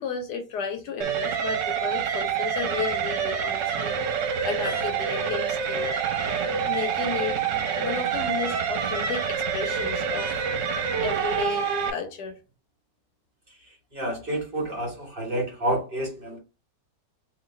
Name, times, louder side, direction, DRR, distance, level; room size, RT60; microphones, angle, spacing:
voice 1, 0.0-5.9 6.7-7.4 7.8-10.3 11.0-12.4, left 6 dB, 70° left, 1.4 m, -33 dB
sound 1, 1.0-11.9, right 7 dB, 80° right, 1.5 m, -27 dB
voice 2, 13.9-16.4, right 1 dB, 35° right, 1.3 m, -29 dB
3.1 x 3.0 x 4.0 m
omnidirectional pair, 1.9 m